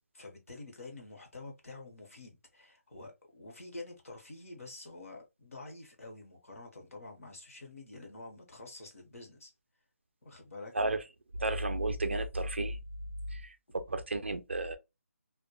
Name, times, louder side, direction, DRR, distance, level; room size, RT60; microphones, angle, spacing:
voice 1, 0.1-9.5 10.2-10.7, left 2 dB, 65° left, 0.9 m, -48 dB
voice 2, 11.4-12.8 13.3-14.8, right 2 dB, 50° right, 0.3 m, -33 dB
2.1 x 2.1 x 2.8 m
figure-of-eight pair, 180°, 8 cm